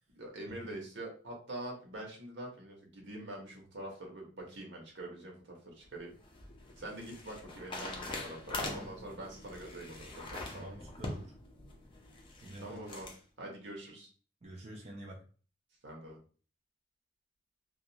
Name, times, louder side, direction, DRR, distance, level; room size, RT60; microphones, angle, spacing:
voice 1, 0.1-6.1 6.8-10.8 12.6-13.1 13.4-14.1 15.8-16.2, right 1 dB, 80° right, -1 dB, 1.0 m, -45 dB
sound 1, 5.8-13.2, left 2 dB, 30° left, 0.5 m, -44 dB
voice 2, 10.4-11.3 12.4-12.8 14.4-15.2, right 1 dB, 40° right, -2 dB, 0.5 m, -48 dB
2.4 x 2.3 x 2.7 m, 0.39 s
head